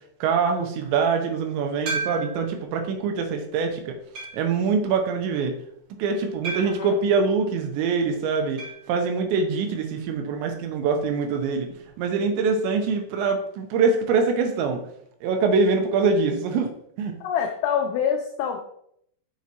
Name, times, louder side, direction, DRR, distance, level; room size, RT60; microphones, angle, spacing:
voice 1, 0.2-3.9 4.3-5.5 6.0-8.6 8.9-11.7 12.0-14.8 15.2-16.7 17.0-17.1, right 4 dB, 85° right, 4 dB, 3.2 m, -24 dB
sound 1, 1.9-2.5 3.2-3.3 4.1-4.5 6.4-6.9 8.6-8.9 9.1-9.2 9.5-9.6 11.6-11.7, right 3 dB, 40° right, 3.0 m, -32 dB
voice 2, 6.6-7.0 17.2-18.6, left 8 dB, 80° left, 4 dB, 2.5 m, -26 dB
7.2 x 5.9 x 2.9 m, 0.70 s
omnidirectional pair, 5.1 m